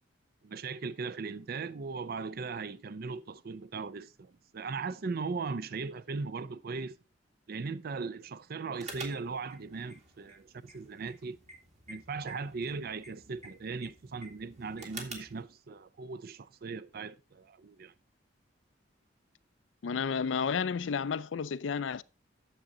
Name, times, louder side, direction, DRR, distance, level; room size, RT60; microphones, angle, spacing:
voice 1, 0.4-7.0 7.5-11.4 11.9-17.9, right 4 dB, 55° right, 0.5 m, -38 dB
sound 1, 8.8-15.4, right 3 dB, 40° right, 2.0 m, -49 dB
voice 2, 19.8-22.0, left 6 dB, 90° left, 0.4 m, -31 dB
9.2 x 7.2 x 3.8 m
head